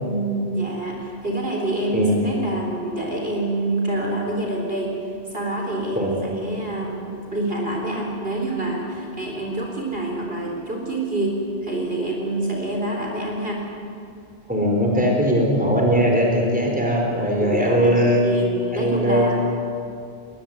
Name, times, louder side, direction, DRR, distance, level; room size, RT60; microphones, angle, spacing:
voice 1, 0.0-4.9 5.3-13.7 17.1-19.4, right 2 dB, 50° right, 0 dB, 4.1 m, -27 dB
voice 2, 1.9-2.3 5.9-6.2 14.5-18.2 18.7-19.4, equal, 5° right, -1 dB, 4.7 m, -20 dB
21.5 x 20.0 x 9.6 m, 2.5 s
omnidirectional pair, 1.3 m